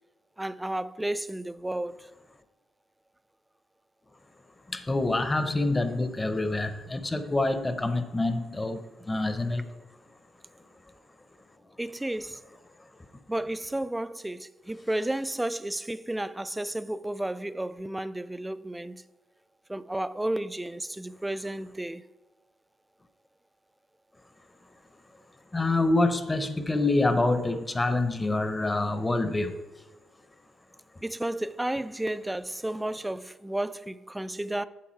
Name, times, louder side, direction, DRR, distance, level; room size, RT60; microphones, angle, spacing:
voice 1, 0.4-2.1 11.8-12.4 13.3-19.0 19.7-22.0 31.0-34.6, right 1 dB, 10° right, 0.4 m, -32 dB
voice 2, 4.7-9.7 25.5-29.6, left 2 dB, 20° left, 0.8 m, -26 dB
8.5 x 7.0 x 4.5 m
cardioid pair, 90°, 0 cm